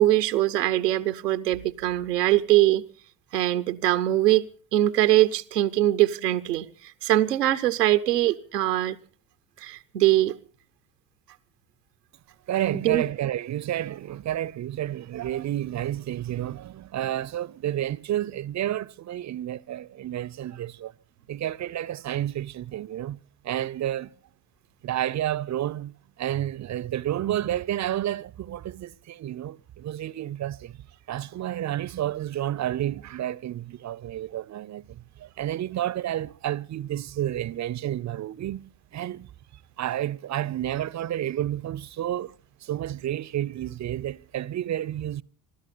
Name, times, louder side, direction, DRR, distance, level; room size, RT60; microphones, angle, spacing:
voice 1, 0.0-2.8 3.3-6.7 7.0-9.0 9.6-10.3 12.7-13.0, right 14 dB, 85° right, 0.8 m, -22 dB
voice 2, 12.5-20.9 21.3-24.1 24.8-39.3 39.8-42.4 42.6-45.2, right 12 dB, 35° right, 0.7 m, -30 dB
27.0 x 12.5 x 4.2 m
figure-of-eight pair, 50°, 47 cm